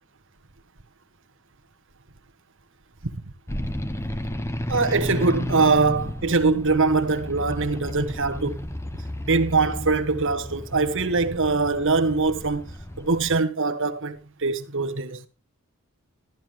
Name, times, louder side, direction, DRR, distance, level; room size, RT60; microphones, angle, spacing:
sound 1, 3.5-13.4, left 1 dB, 10° left, 0.7 m, -33 dB
voice 1, 4.7-8.6 9.3-15.2, right 3 dB, 60° right, 1.3 m, -23 dB
13.5 x 12.0 x 2.9 m
head